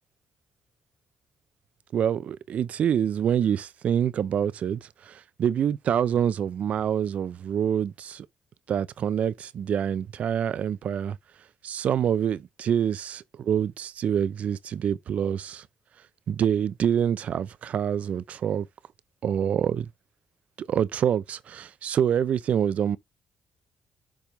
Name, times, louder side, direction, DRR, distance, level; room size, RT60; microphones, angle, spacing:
voice 1, 1.9-8.3 8.7-11.2 11.6-15.7 16.3-18.7 19.2-19.9 20.6-23.0, right 9 dB, 65° right, 0.6 m, -26 dB
7.1 x 3.6 x 4.6 m
cardioid pair, 75°, 3 cm